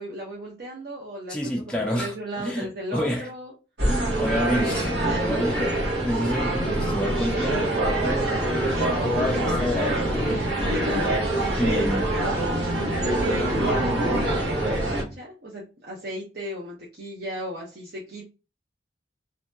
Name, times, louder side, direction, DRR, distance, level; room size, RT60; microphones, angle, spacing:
voice 1, 0.0-1.5 1.8-3.5 5.0-5.6 8.7-10.0 10.7-11.1 11.7-18.2, equal, 60° right, 0.9 m, -35 dB
voice 2, 1.3-3.3 3.8-5.7 6.0-10.5 10.9-11.1 11.6-12.1, equal, 5° left, 0.3 m, -29 dB
sound 1, 3.8-15.0, right 1 dB, 90° right, 1.1 m, -25 dB
sound 2, 8.3-15.2, equal, 25° right, 1.5 m, -40 dB
2.8 x 2.6 x 2.2 m
head